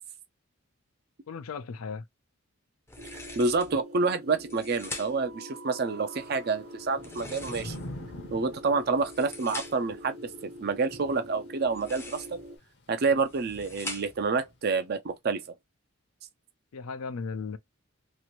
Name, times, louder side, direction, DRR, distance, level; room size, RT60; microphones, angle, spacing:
voice 1, 1.3-2.0 16.7-17.6, left 5 dB, 80° left, 0.5 m, -36 dB
sound 1, 2.9-3.8 4.4-5.4 6.9-8.0 8.8-10.0 11.6-12.5 13.1-14.3, left 2 dB, 10° left, 0.5 m, -43 dB
sound 2, 3.0-12.6, equal, 85° right, 1.0 m, -46 dB
voice 2, 3.4-7.8 8.3-12.4 12.9-15.4, right 4 dB, 45° right, 0.4 m, -28 dB
Thunder / Rain, 6.2-14.6, left 1 dB, 50° left, 0.7 m, -46 dB
3.0 x 2.5 x 2.9 m
head